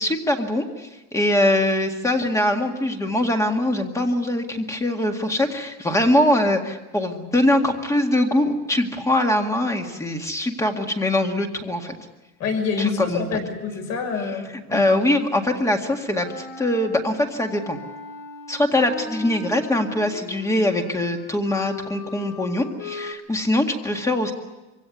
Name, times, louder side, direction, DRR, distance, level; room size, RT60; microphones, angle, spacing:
voice 1, 0.0-11.9 12.8-13.2 14.7-17.8 18.5-24.3, left 1 dB, 10° left, 4 dB, 2.0 m, -22 dB
voice 2, 12.4-15.0, left 5 dB, 50° left, 4 dB, 6.2 m, -26 dB
Wind instrument woodwind instrument, 16.1-23.1, left 3 dB, 70° left, 5.0 m, -38 dB
25.0 x 16.5 x 9.5 m, 1.1 s
cardioid pair, 170°, 34 cm